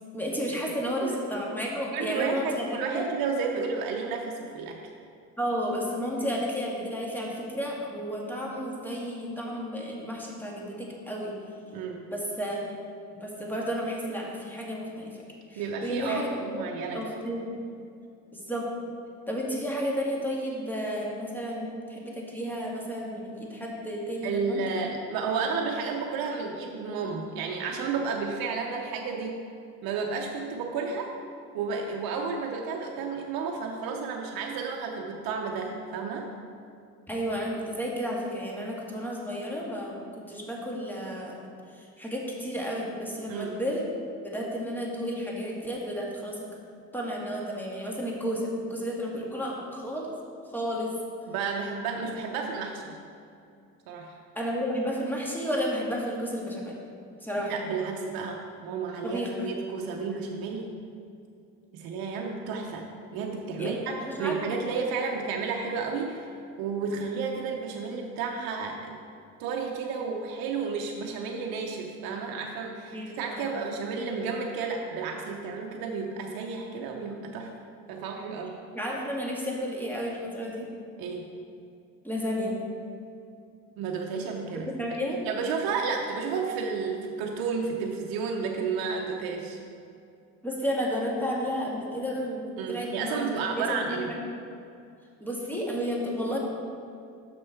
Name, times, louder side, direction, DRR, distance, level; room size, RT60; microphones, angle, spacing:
voice 1, 0.1-3.1 5.4-11.4 12.1-12.6 13.1-15.2 15.5-17.6 18.3-18.7 19.3-24.6 37.1-41.4 41.7-43.9 44.2-46.4 46.9-50.1 50.5-50.9 54.4-56.8 57.2-57.6 59.0-59.5 63.6-64.6 72.9-73.6 78.7-80.7 82.0-82.6 84.6-85.2 90.4-94.2 95.2-96.4, equal, 5° left, -3 dB, 1.8 m, -32 dB
voice 2, 1.9-4.8 11.7-12.0 15.6-17.0 24.2-29.3 29.8-31.1 31.5-36.3 43.3-43.6 51.3-53.0 53.9-54.1 57.5-60.7 61.7-62.9 63.1-68.9 69.4-77.5 77.9-78.6 81.0-81.3 83.8-84.7 85.3-89.6 92.6-94.1, right 5 dB, 65° right, 0 dB, 0.8 m, -32 dB
6.2 x 6.1 x 4.5 m, 2.5 s
hypercardioid pair, 60°, 39 cm